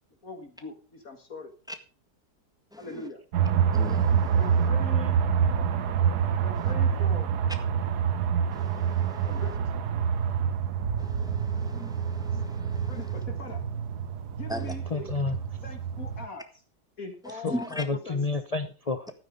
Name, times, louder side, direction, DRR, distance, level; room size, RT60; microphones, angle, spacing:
voice 1, 0.2-1.5 2.8-3.2 4.3-5.2 6.4-7.3 9.2-9.8 12.9-13.6 14.3-15.1 15.6-16.6 17.0-18.2, left 3 dB, 55° left, 4 dB, 2.1 m, -41 dB
sound 1, 3.3-16.3, right 7 dB, 70° right, 1.4 m, -27 dB
voice 2, 3.7-4.6 6.6-6.7 8.5-9.4 11.0-13.2 14.5-14.7 17.5-17.8, equal, ahead, 6 dB, 1.4 m, -39 dB
voice 3, 14.9-15.4 17.3-19.1, left 4 dB, 75° left, 9 dB, 0.3 m, -30 dB
13.0 x 9.5 x 5.2 m, 0.38 s
omnidirectional pair, 1.8 m